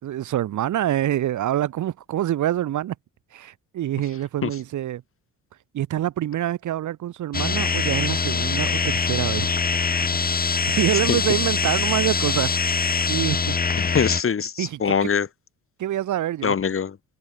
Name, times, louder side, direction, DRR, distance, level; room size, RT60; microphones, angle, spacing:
voice 1, 0.0-3.0 3.3-5.0 5.7-9.6 10.5-12.5 13.0-13.6 14.6-14.9 15.8-16.5, right 12 dB, 75° right, 4.1 m, -26 dB
sound 1, 7.3-14.2, left 5 dB, 30° left, 2.1 m, -23 dB
voice 2, 13.8-15.3 16.4-17.0, left 7 dB, 45° left, 5.4 m, -23 dB
cardioid pair, 90°, 30 cm